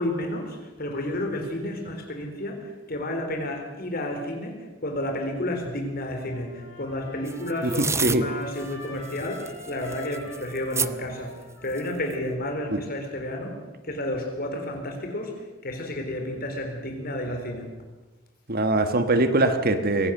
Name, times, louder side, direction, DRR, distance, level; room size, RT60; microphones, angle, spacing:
voice 1, 0.0-11.3 11.6-13.6 13.8-15.3 15.6-17.7, left 1 dB, 50° left, 4 dB, 4.2 m, -31 dB
Trumpet, 6.3-13.0, left 2 dB, 80° left, 4.0 m, -46 dB
sound 1, 7.3-8.2 8.6-8.7 9.0-10.9 11.7-12.1, right 5 dB, 15° right, 0.6 m, -29 dB
voice 2, 7.6-8.2 12.7-12.8 18.5-20.1, right 2 dB, 50° right, 8 dB, 1.5 m, -22 dB
23.0 x 17.0 x 6.7 m, 1.2 s
head